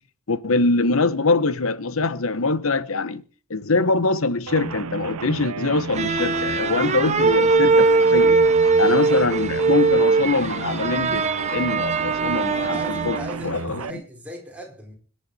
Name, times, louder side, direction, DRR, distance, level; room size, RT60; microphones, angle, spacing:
voice 1, 0.3-3.2 3.5-8.4 8.8-11.2 11.5-13.2 13.4-14.0, left 3 dB, 70° left, 1.0 m, -23 dB
sound 1, 4.5-13.9, right 5 dB, 80° right, 0.7 m, -33 dB
sound 2, 5.9-13.4, right 4 dB, 30° right, 1.0 m, -20 dB
voice 2, 12.5-14.9, equal, 5° right, 5.0 m, -38 dB
25.0 x 10.5 x 4.2 m
head